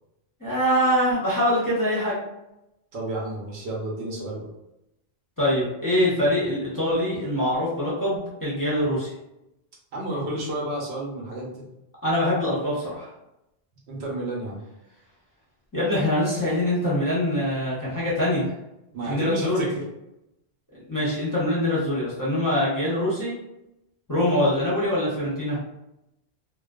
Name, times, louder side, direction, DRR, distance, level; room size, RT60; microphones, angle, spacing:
voice 1, 0.4-2.2 5.4-9.1 12.0-13.1 15.7-18.5 19.0-19.6 20.9-23.3 24.1-25.6, left 1 dB, 20° left, -8 dB, 0.6 m, -24 dB
voice 2, 2.9-4.5 9.9-11.6 13.9-14.6 18.9-19.8, right 1 dB, 85° right, -3 dB, 1.0 m, -31 dB
2.4 x 2.2 x 2.3 m, 0.90 s
omnidirectional pair, 1.1 m